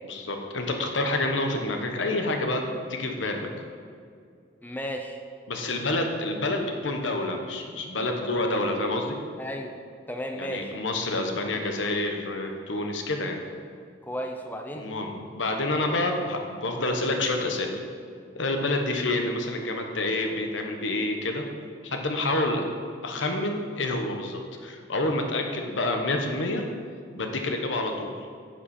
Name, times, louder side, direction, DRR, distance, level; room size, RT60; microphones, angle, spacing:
voice 1, 0.1-2.6 2.9-3.5 5.5-9.2 10.4-13.4 14.8-17.8 18.3-21.4 21.8-22.6 23.0-26.6 27.1-28.1, left 2 dB, 85° left, 3 dB, 1.2 m, -28 dB
voice 2, 4.6-5.2 9.4-9.8 10.1-10.7 14.0-14.8, equal, 10° left, 3 dB, 0.6 m, -34 dB
10.0 x 7.4 x 4.3 m, 2.3 s
head